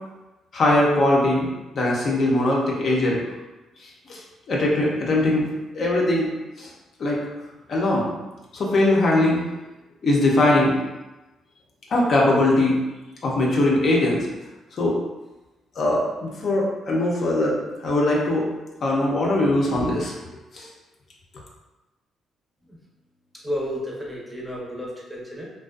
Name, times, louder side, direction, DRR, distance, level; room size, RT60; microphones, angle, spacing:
voice 1, 0.5-1.5 1.7-3.2 3.8-4.2 4.5-5.5 5.7-6.3 6.6-6.7 7.0-7.2 7.7-8.1 8.5-9.4 10.0-10.8 11.9-12.8 13.2-14.3 14.8-15.0 15.8-17.6 17.8-18.5 18.8-20.1 20.5-20.7, left 1 dB, 55° left, -3 dB, 0.5 m, -21 dB
voice 2, 23.4-25.5, equal, 10° right, -4 dB, 0.6 m, -31 dB
2.4 x 2.2 x 2.3 m, 1.1 s
cardioid pair, 90°, 0 cm